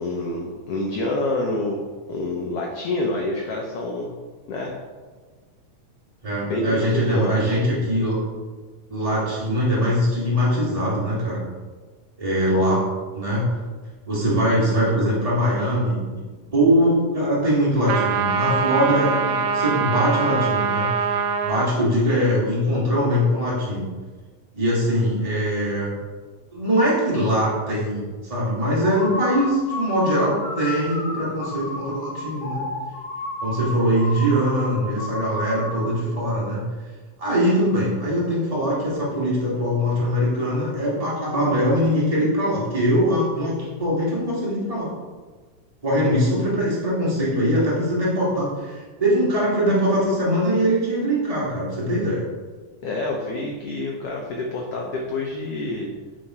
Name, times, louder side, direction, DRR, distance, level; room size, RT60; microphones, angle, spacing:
voice 1, 0.0-1.8 2.1-4.1 4.5-4.7 6.4-7.6 52.8-55.9, left 2 dB, 90° left, 0 dB, 1.3 m, -27 dB
voice 2, 6.2-8.2 8.9-11.4 12.2-12.8 13.1-13.5 14.1-16.0 16.5-23.8 24.5-25.9 26.5-32.6 33.4-36.6 37.2-44.9 45.8-52.2, equal, 40° right, -8 dB, 0.5 m, -22 dB
sound 1, 17.9-21.7, right 6 dB, 80° right, 1.6 m, -23 dB
sound 2, 28.8-36.0, left 2 dB, 75° left, 2.6 m, -32 dB
8.3 x 3.8 x 4.6 m, 1.4 s
omnidirectional pair, 3.7 m